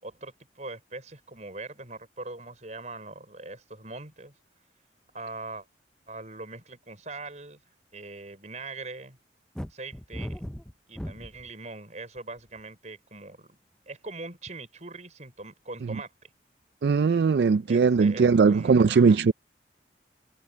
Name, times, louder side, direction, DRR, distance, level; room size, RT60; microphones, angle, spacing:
voice 1, 0.0-4.3 5.1-5.7 6.1-7.6 7.9-9.2 9.7-10.4 10.9-13.6 13.9-16.1 17.7-19.3, right 3 dB, 40° right, 5.6 m, -41 dB
sound 1, 9.6-11.5 12.2-12.6, equal, 5° left, 0.4 m, -37 dB
voice 2, 16.8-19.3, right 5 dB, 70° right, 0.4 m, -20 dB
head